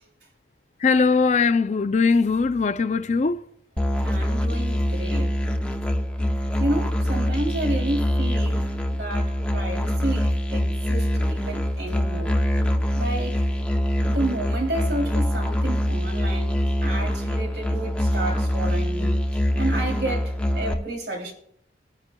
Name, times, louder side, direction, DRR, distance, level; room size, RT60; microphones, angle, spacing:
voice 1, 0.8-3.4, left 4 dB, 40° left, 0.4 m, -20 dB
Musical instrument, 3.8-20.7, left 1 dB, 5° left, 0.8 m, -24 dB
voice 2, 4.0-5.4 6.6-12.4 13.0-13.4 14.0-19.2 19.5-21.3, right 2 dB, 60° right, 2.9 m, -31 dB
22.5 x 9.5 x 2.3 m
head